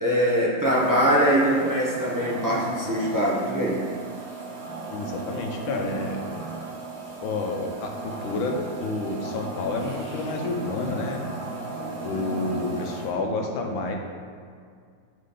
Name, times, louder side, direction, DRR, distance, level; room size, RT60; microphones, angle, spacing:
voice 1, 0.0-3.8, equal, 15° right, -6 dB, 0.6 m, -22 dB
sound 1, 0.6-13.1, right 3 dB, 35° right, 1.6 m, -36 dB
voice 2, 4.9-6.2 7.2-7.9 8.2-11.2 12.0-14.0, left 3 dB, 85° left, 3 dB, 1.6 m, -29 dB
10.0 x 4.4 x 3.8 m, 2.2 s
omnidirectional pair, 2.1 m